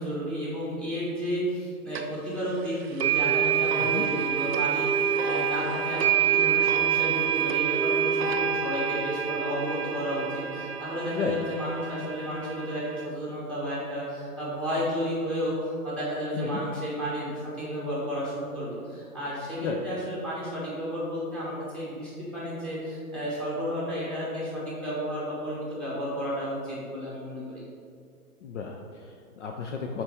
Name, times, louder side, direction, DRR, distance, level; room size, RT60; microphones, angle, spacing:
voice 1, 0.0-27.6, equal, ahead, -7 dB, 1.4 m, -32 dB
sound 1, 2.0-2.1 3.0-13.1, right 8 dB, 45° right, 0.5 m, -27 dB
voice 2, 3.8-4.1 11.1-11.4 16.4-16.6 19.6-19.8 28.4-30.0, left 5 dB, 55° left, 2 dB, 0.5 m, -33 dB
6.4 x 4.4 x 3.4 m, 2.2 s
hypercardioid pair, 135°, 45 cm